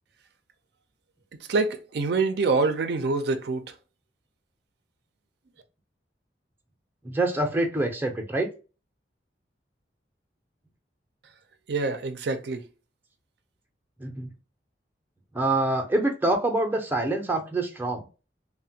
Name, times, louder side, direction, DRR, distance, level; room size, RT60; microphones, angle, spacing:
voice 1, 1.5-3.7 11.7-12.7, right 3 dB, 65° right, 0.4 m, -26 dB
voice 2, 7.0-8.5 14.0-14.3 15.3-18.0, right 2 dB, 10° right, 0.5 m, -26 dB
3.2 x 2.1 x 2.7 m
head